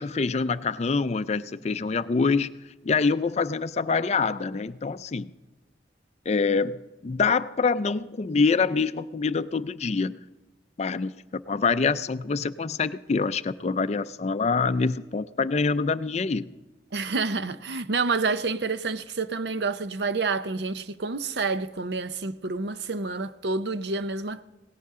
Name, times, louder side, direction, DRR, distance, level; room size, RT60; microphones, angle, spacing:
voice 1, 0.0-2.5 2.8-5.3 6.3-10.2 10.8-16.4, left 4 dB, 35° left, 0.4 m, -25 dB
voice 2, 16.9-24.4, right 4 dB, 65° right, 0.7 m, -28 dB
17.5 x 16.0 x 3.7 m
head